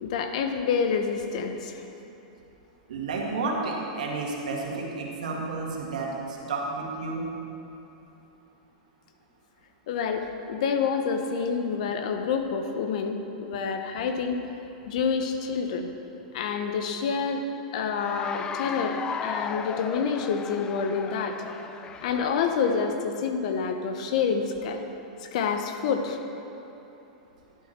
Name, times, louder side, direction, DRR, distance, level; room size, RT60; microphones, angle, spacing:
voice 1, 0.0-1.8 9.9-14.4 14.9-15.9 16.3-17.4 17.7-21.4 22.0-24.8 25.2-26.2, left 6 dB, 65° left, 6 dB, 1.0 m, -28 dB
voice 2, 2.9-7.2, right 3 dB, 85° right, -1 dB, 1.9 m, -31 dB
Cheering / Applause, 17.9-23.1, left 6 dB, 20° left, 0.3 m, -36 dB
12.0 x 7.5 x 4.5 m, 3.0 s
supercardioid pair, 140°, 4 cm